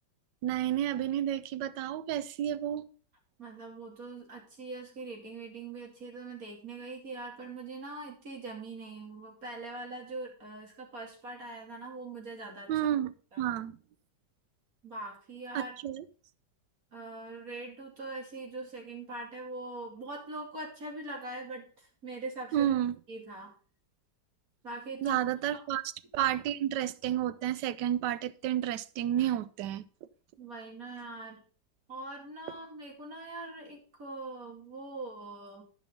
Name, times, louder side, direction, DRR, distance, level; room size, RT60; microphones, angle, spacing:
voice 1, 0.4-2.9 12.7-13.8 15.5-16.0 22.5-22.9 25.0-25.8 26.1-29.8, right 11 dB, 75° right, 1.2 m, -31 dB
voice 2, 3.4-12.7 13.3-13.5 14.8-15.8 16.9-22.7 23.1-23.5 24.6-25.2 25.5-25.6 30.4-31.4 31.9-35.6, right 2 dB, 50° right, 3.1 m, -42 dB
11.5 x 5.4 x 5.3 m
omnidirectional pair, 2.0 m